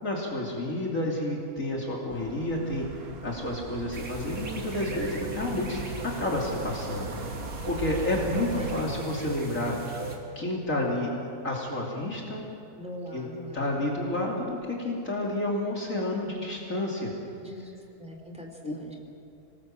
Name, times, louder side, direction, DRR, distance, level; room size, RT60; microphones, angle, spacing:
voice 1, 0.0-7.1 7.7-9.7 10.4-12.4 13.1-13.3 13.5-17.1 18.6-18.7, left 1 dB, 55° left, -2 dB, 3.4 m, -30 dB
sound 1, 2.1-8.8, right 4 dB, 40° right, 1.2 m, -40 dB
sound 2, 3.9-10.2, right 2 dB, 60° right, 3.0 m, -38 dB
voice 2, 8.2-8.7 12.8-13.7 17.4-19.0, equal, 5° right, 1 dB, 3.3 m, -41 dB
25.5 x 19.0 x 7.7 m, 2.6 s
omnidirectional pair, 1.7 m